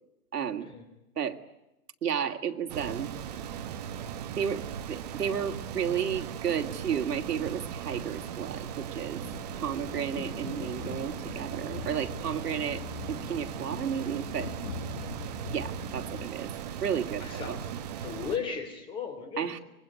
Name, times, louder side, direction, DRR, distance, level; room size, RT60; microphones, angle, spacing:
voice 1, 0.3-0.7 1.2-1.4 2.0-3.1 4.4-9.2 9.5-12.8 13.1-14.5 15.5-16.5 16.8-17.6 19.4-19.6, right 8 dB, 85° right, 6 dB, 2.7 m, -32 dB
sound 1, 2.7-18.4, right 8 dB, 25° right, 1.4 m, -38 dB
sound 2, 9.2-16.3, left 8 dB, 35° left, 1.4 m, -43 dB
voice 2, 17.2-17.6 18.0-19.5, left 6 dB, 10° left, 7 dB, 3.1 m, -35 dB
26.0 x 22.5 x 9.7 m, 0.92 s
hypercardioid pair, 175°, 46 cm